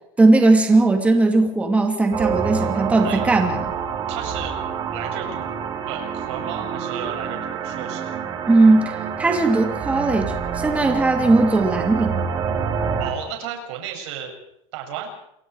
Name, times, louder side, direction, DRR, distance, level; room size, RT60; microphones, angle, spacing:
voice 1, 0.2-3.7 8.5-12.3, right 2 dB, 10° right, 4 dB, 2.6 m, -18 dB
sound 1, 2.1-13.1, right 7 dB, 25° right, 3.5 m, -27 dB
voice 2, 4.1-4.5 4.9-5.5 5.9-8.0 13.0-14.4 14.7-15.1, right 8 dB, 60° right, 3 dB, 7.7 m, -33 dB
28.5 x 23.5 x 4.8 m, 0.76 s
supercardioid pair, 170°, 17 cm